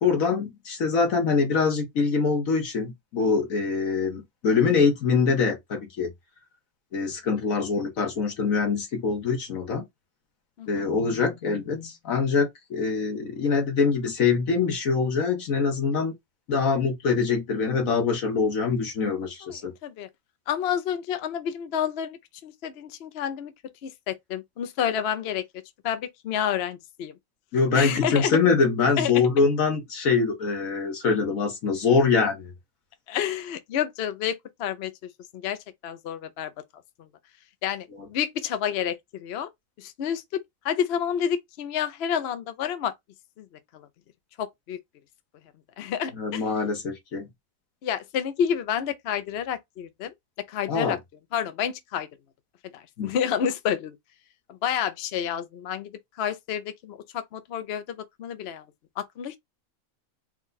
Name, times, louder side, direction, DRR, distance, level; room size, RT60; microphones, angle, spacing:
voice 1, 0.0-6.1 6.9-9.8 10.7-16.1 16.5-19.7 27.5-32.5 46.2-47.3 50.7-51.0 53.0-53.1, left 5 dB, 80° left, 1.7 m, -24 dB
voice 2, 10.6-10.9 19.4-19.6 19.8-20.1 20.5-23.5 23.8-25.5 25.8-27.1 27.7-28.4 29.0-29.3 33.1-36.5 37.0-37.1 37.6-39.5 39.8-42.9 43.4-43.5 43.7-43.9 44.4-44.8 45.8-46.5 47.8-50.1 50.5-51.0 51.3-52.1 52.7-54.0 54.5-55.9 56.2-58.6 59.0-59.4, left 9 dB, 60° left, 0.8 m, -29 dB
4.6 x 2.3 x 3.9 m
omnidirectional pair, 1.4 m